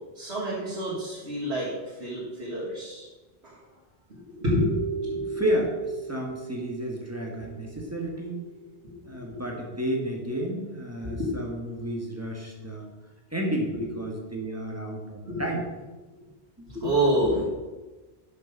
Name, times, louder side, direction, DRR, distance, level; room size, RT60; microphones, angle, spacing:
voice 1, 0.0-1.7 2.0-3.1 4.1-5.4 7.8-7.9 8.8-9.4 11.0-11.3 15.3-15.5 16.7-17.4, equal, 90° right, -8 dB, 2.3 m, -28 dB
sound 1, 4.6-8.6, right 5 dB, 35° right, 1.1 m, -37 dB
voice 2, 5.3-5.7 6.1-8.4 9.0-12.9 13.3-15.6 16.6-16.7, right 1 dB, 15° right, 0 dB, 1.3 m, -31 dB
6.6 x 6.4 x 5.3 m, 1.2 s
omnidirectional pair, 1.1 m